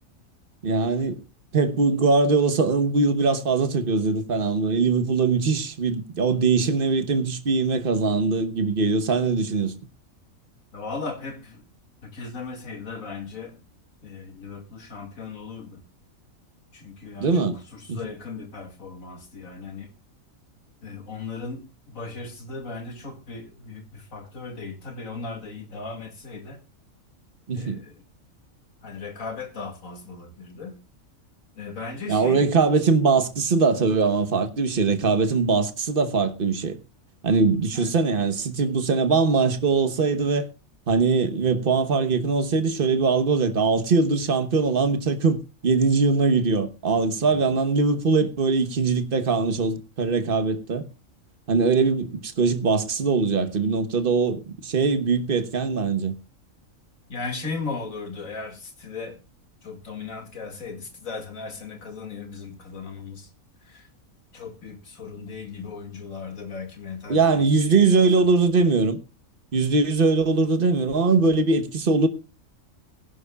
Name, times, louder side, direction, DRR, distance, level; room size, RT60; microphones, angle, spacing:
voice 1, 0.6-1.2 1.5-9.7 17.2-17.6 17.9-18.0 27.5-27.8 32.1-36.8 37.2-40.5 40.9-50.9 51.5-56.1 67.1-69.0 69.5-72.1, right 4 dB, 40° right, 1.3 m, -21 dB
voice 2, 10.7-11.6 12.0-13.6 14.0-15.8 16.7-19.9 20.8-26.6 27.5-28.0 28.8-30.8 31.6-32.5 37.7-37.9 47.3-47.4 57.1-59.2 59.6-63.3 63.6-63.9 64.3-68.1 68.3-68.5, left 4 dB, 75° left, 2.6 m, -37 dB
21.5 x 11.0 x 2.4 m
omnidirectional pair, 1.4 m